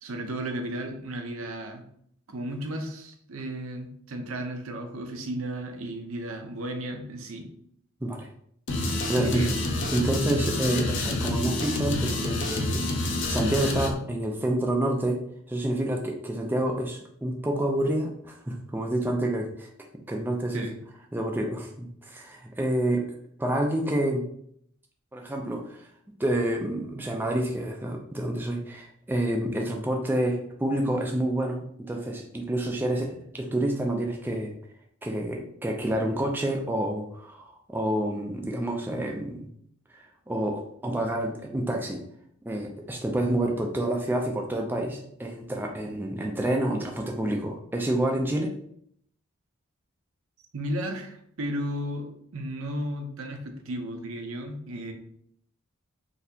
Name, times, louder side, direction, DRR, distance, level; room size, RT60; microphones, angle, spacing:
voice 1, 0.0-1.8 2.3-7.5 9.2-9.5 20.5-20.8 50.5-54.9, right 1 dB, 70° right, 4 dB, 0.6 m, -34 dB
sound 1, 8.7-13.9, left 2 dB, 60° left, 0.6 m, -28 dB
voice 2, 8.8-9.5 9.9-12.8 13.3-15.2 15.5-19.7 20.1-20.7 21.1-23.0 23.4-24.3 25.1-25.9 26.2-34.5 35.0-39.5 40.3-42.0 42.4-48.5, right 1 dB, 10° right, 1 dB, 0.3 m, -28 dB
4.0 x 2.7 x 2.7 m, 0.67 s
head